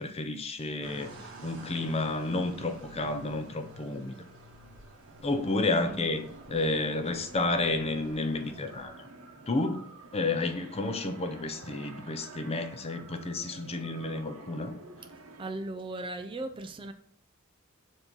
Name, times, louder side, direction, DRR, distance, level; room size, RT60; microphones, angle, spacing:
voice 1, 0.0-4.2 5.2-9.1 9.5-9.8 10.1-14.8, left 2 dB, 30° left, 0.6 m, -31 dB
sound 1, 0.8-8.9, right 2 dB, 65° right, 1.5 m, -50 dB
sound 2, 5.0-15.5, right 3 dB, 90° right, 0.9 m, -49 dB
voice 2, 15.4-16.9, right 2 dB, 25° right, 0.4 m, -37 dB
7.0 x 2.8 x 5.3 m
head